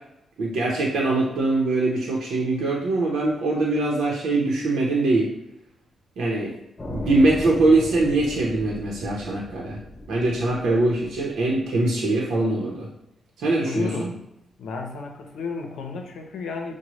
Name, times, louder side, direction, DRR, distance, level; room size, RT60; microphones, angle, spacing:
voice 1, 0.4-5.3 6.2-6.5 6.9-9.8 10.1-12.9 13.4-14.1, right 2 dB, 85° right, -3 dB, 0.8 m, -22 dB
sound 1, 6.8-11.6, left 1 dB, 25° left, 0.8 m, -37 dB
voice 2, 13.5-14.2 14.6-16.7, left 4 dB, 85° left, 3 dB, 0.7 m, -33 dB
6.1 x 2.2 x 3.0 m, 0.85 s
wide cardioid pair, 145°, 0 cm